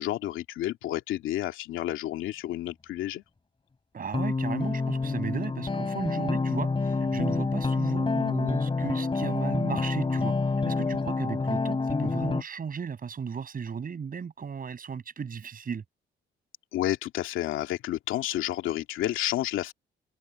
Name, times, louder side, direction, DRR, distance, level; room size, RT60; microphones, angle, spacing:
voice 1, 0.0-3.2 16.7-19.7, left 14 dB, 90° left, 2.5 m, -30 dB
voice 2, 3.9-10.3 10.6-15.8, right 6 dB, 45° right, 7.7 m, -35 dB
sound 1, 4.1-12.4, left 3 dB, 25° left, 3.5 m, -28 dB
open air
cardioid pair, 90°, 20 cm